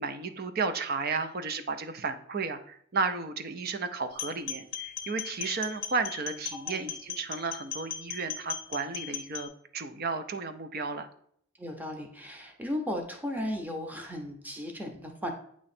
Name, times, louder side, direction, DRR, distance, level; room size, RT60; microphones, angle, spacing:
voice 1, 0.0-11.1, right 4 dB, 50° right, 9 dB, 0.6 m, -33 dB
sound 1, 4.1-9.5, left 9 dB, 60° left, 0.8 m, -38 dB
voice 2, 11.6-15.3, left 1 dB, 10° right, 2 dB, 0.7 m, -35 dB
8.6 x 3.1 x 4.2 m, 0.67 s
head